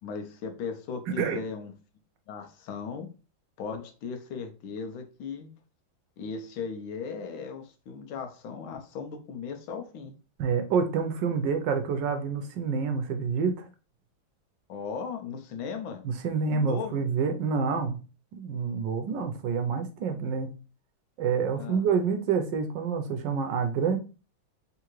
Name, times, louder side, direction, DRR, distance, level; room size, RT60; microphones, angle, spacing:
voice 1, 0.0-1.7 2.3-3.1 3.6-5.5 6.2-10.1 14.7-16.0 16.5-17.1 21.6-21.8, left 5 dB, 85° left, 6 dB, 1.5 m, -37 dB
voice 2, 10.4-13.7 16.0-18.0 18.4-20.6 21.2-24.0, right 5 dB, 75° right, 7 dB, 1.2 m, -27 dB
3.7 x 3.3 x 3.0 m, 0.33 s
omnidirectional pair, 2.1 m